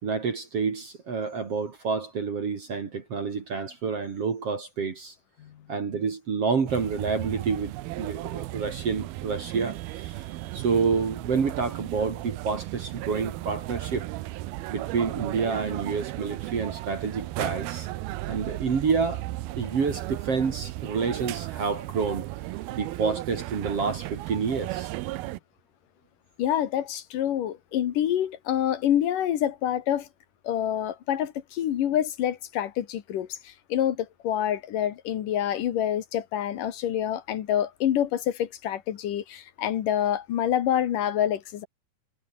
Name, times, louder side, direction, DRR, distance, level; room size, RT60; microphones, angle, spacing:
voice 1, 0.0-5.1 5.7-10.2 10.5-14.1 14.7-17.9 18.3-19.2 19.6-22.3 22.7-24.9, right 5 dB, 40° right, 3.1 m, -28 dB
sound 1, 6.7-25.4, right 17 dB, 85° right, 2.7 m, -35 dB
voice 2, 26.4-30.1 30.4-41.7, left 10 dB, 65° left, 2.9 m, -27 dB
omnidirectional pair, 4.4 m